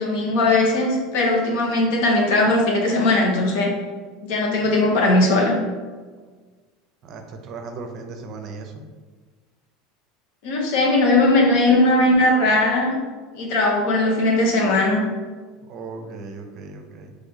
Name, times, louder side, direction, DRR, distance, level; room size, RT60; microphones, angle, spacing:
voice 1, 0.0-3.7 4.2-5.6 10.4-12.9 13.3-15.0, left 2 dB, 65° left, -1 dB, 0.9 m, -19 dB
voice 2, 7.0-8.7 15.7-17.2, right 4 dB, 50° right, 4 dB, 0.5 m, -36 dB
3.1 x 2.7 x 3.9 m, 1.4 s
hypercardioid pair, 95°, 0 cm